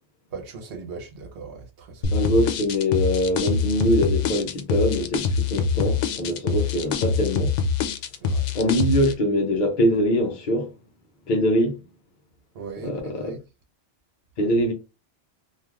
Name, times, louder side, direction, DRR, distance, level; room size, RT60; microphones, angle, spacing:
voice 1, 0.3-2.2 8.2-8.5 12.5-13.4, right 4 dB, 60° right, 0.9 m, -39 dB
sound 1, 2.0-9.1, left 5 dB, 85° left, 0.9 m, -24 dB
voice 2, 2.1-7.5 8.5-10.7 11.3-11.8 12.8-13.3 14.4-14.7, equal, 50° left, 0.7 m, -23 dB
3.1 x 2.4 x 2.4 m
omnidirectional pair, 1.2 m